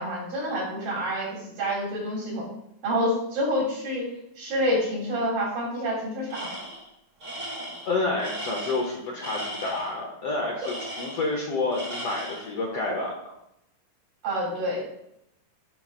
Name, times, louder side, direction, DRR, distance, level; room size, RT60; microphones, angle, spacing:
voice 1, 0.0-2.5 2.8-4.1 4.4-6.6 10.6-10.7 14.2-14.8, equal, 85° right, -5 dB, 4.8 m, -28 dB
Tools, 6.3-6.9 7.2-9.9 10.6-11.4 11.7-12.5, right 1 dB, 50° right, 0.9 m, -37 dB
voice 2, 7.9-13.3, left 2 dB, 70° left, 0 dB, 1.5 m, -29 dB
11.0 x 4.9 x 2.4 m, 0.79 s
omnidirectional pair, 3.9 m